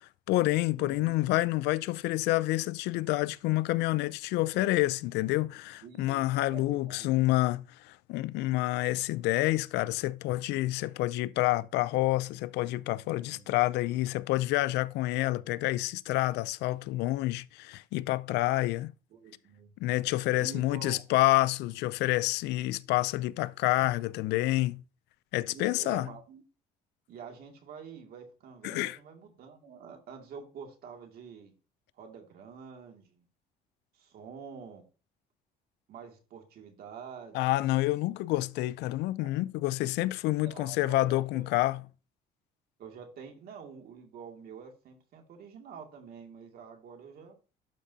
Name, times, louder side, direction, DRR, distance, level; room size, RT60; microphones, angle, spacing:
voice 1, 0.0-18.9 19.8-24.8 25.3-26.1 28.6-29.0 37.3-41.8, left 18 dB, 85° left, 0.4 m, -28 dB
voice 2, 0.8-1.2 5.8-6.2 6.5-7.2 13.2-13.5 19.1-19.7 20.4-21.0 25.5-26.4 27.1-31.5 32.0-33.2 33.9-34.8 35.9-37.4 39.2-39.4 40.4-41.5 42.8-47.4, right 6 dB, 65° right, 2.3 m, -47 dB
12.0 x 5.0 x 2.7 m
cardioid pair, 110°, 17 cm